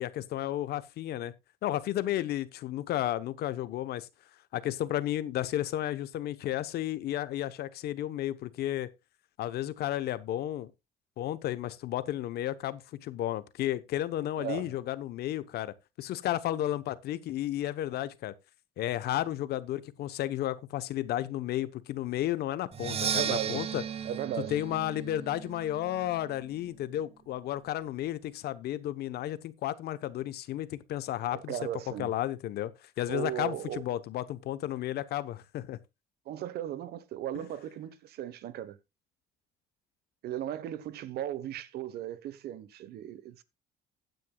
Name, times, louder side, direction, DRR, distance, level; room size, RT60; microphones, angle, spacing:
voice 1, 0.0-1.3 1.6-4.1 4.5-8.9 9.4-10.7 11.2-18.3 18.8-23.8 24.5-31.6 32.0-32.7 33.0-35.8 37.3-37.4, left 13 dB, 70° left, 1.0 m, -33 dB
voice 2, 14.4-14.7 23.0-23.6 24.0-24.6 31.3-32.1 33.1-33.8 36.3-38.8 40.2-43.4, right 11 dB, 70° right, 1.1 m, -36 dB
Percussion, 22.7-26.5, right 8 dB, 35° right, 0.7 m, -35 dB
15.5 x 9.4 x 2.3 m
cardioid pair, 110°, 17 cm